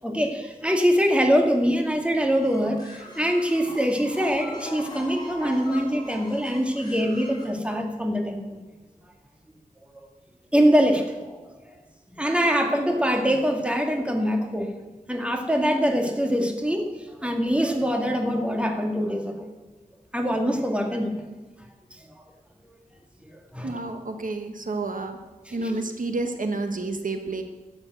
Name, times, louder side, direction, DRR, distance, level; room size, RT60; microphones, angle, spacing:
voice 1, 0.0-8.6 10.5-11.4 12.2-14.7 15.1-19.5 20.1-21.2 23.2-23.8 25.5-25.7, equal, 10° right, 3 dB, 2.2 m, -24 dB
sound 1, 2.3-7.5, left 2 dB, 30° left, 5.3 m, -41 dB
voice 2, 23.6-25.2 25.5-27.4, right 2 dB, 65° right, 5 dB, 1.3 m, -29 dB
13.0 x 8.8 x 7.9 m, 1.2 s
wide cardioid pair, 80°, 14 cm